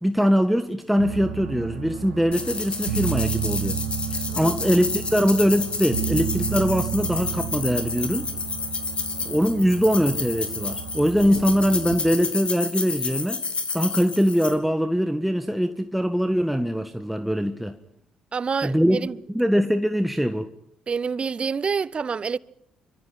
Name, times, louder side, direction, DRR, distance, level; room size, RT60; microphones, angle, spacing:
voice 1, 0.0-3.8 4.1-8.3 9.2-13.4 13.7-17.8 18.6-19.1 19.3-20.5, equal, ahead, 1.7 m, -22 dB
sound 1, 1.0-12.0, right 9 dB, 75° right, 3.3 m, -32 dB
sound 2, 2.3-14.5, left 4 dB, 35° left, 4.2 m, -30 dB
Explosion, 11.2-13.8, left 2 dB, 85° left, 6.2 m, -42 dB
voice 2, 18.3-19.2 20.9-22.4, right 5 dB, 35° right, 1.0 m, -27 dB
29.5 x 25.0 x 5.9 m
figure-of-eight pair, 45°, 3 cm